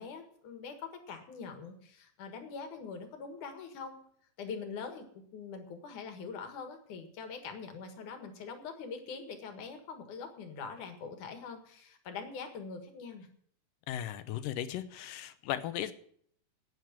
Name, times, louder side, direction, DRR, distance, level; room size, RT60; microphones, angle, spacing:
voice 1, 0.0-4.0 4.4-13.3, left 5 dB, 70° left, 6 dB, 3.1 m, -43 dB
voice 2, 13.9-15.9, left 12 dB, 85° left, 12 dB, 2.5 m, -36 dB
9.5 x 9.2 x 8.8 m, 0.64 s
omnidirectional pair, 3.7 m